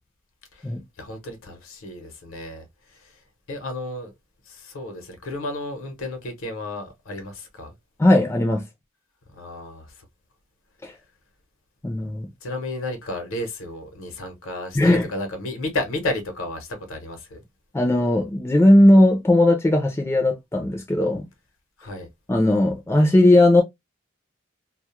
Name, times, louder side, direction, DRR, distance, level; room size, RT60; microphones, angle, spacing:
voice 1, 1.0-3.2 3.5-4.1 4.5-7.7 9.3-10.1 12.4-17.4 21.8-22.1, left 1 dB, 80° left, 0.8 m, -32 dB
voice 2, 8.0-8.6 10.8-10.9 11.8-12.3 14.8-15.0 17.7-21.2 22.3-23.6, left 1 dB, 15° left, 0.4 m, -17 dB
2.3 x 2.0 x 2.8 m
head